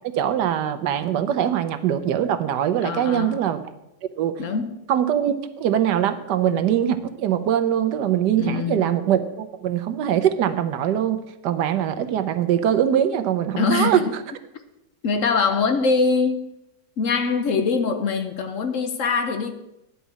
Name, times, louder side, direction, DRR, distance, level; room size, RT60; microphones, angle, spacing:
voice 1, 0.0-3.6 4.2-4.4 4.9-14.0, right 10 dB, 85° right, 1.4 m, -22 dB
voice 2, 2.8-3.4 4.4-4.7 8.4-8.9 13.5-14.1 15.0-16.5 17.0-19.5, left 4 dB, 55° left, 1.1 m, -23 dB
10.0 x 5.7 x 8.3 m
omnidirectional pair, 1.8 m